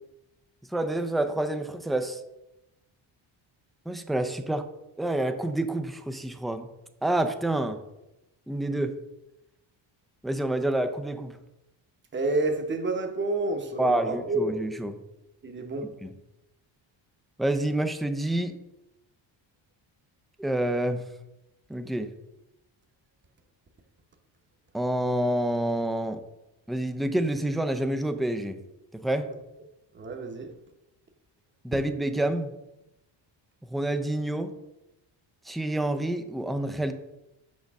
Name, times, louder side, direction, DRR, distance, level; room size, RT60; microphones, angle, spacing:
voice 1, 0.7-2.2 3.9-4.6 5.0-6.7 7.0-7.8 8.5-8.9 10.2-11.4 13.8-15.0 16.0-16.1 17.4-18.5 20.4-21.0 21.7-22.1 24.7-26.2 26.7-28.6 29.0-29.3 31.6-32.5 33.6-34.5 35.5-36.9, right 1 dB, ahead, 7 dB, 0.4 m, -28 dB
voice 2, 12.1-14.6 15.4-15.9 29.9-30.5, right 2 dB, 25° right, 4 dB, 0.9 m, -29 dB
6.4 x 5.2 x 3.5 m, 0.94 s
cardioid pair, 90°, 48 cm